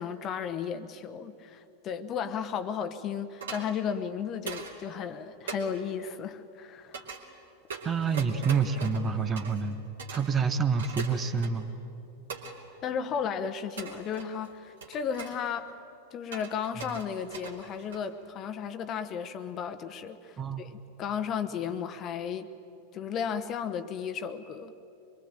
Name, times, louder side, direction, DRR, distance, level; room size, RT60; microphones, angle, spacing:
voice 1, 0.0-7.1 12.8-15.7 16.1-22.5 22.9-24.7, left 7 dB, 30° left, 11 dB, 1.1 m, -34 dB
sound 1, 3.4-3.7 4.5-4.8 5.5-5.6 6.9-7.2 7.7-9.7 10.0-10.3 10.8-11.7 12.3-12.6 13.8-14.5 14.8-15.4 16.3-18.2, right 5 dB, 65° right, 2.9 m, -41 dB
voice 2, 7.8-9.8 10.1-11.7 20.4-20.7, right 5 dB, 25° right, 10 dB, 1.2 m, -27 dB
25.0 x 23.0 x 9.0 m, 2.8 s
figure-of-eight pair, 90°, 0 cm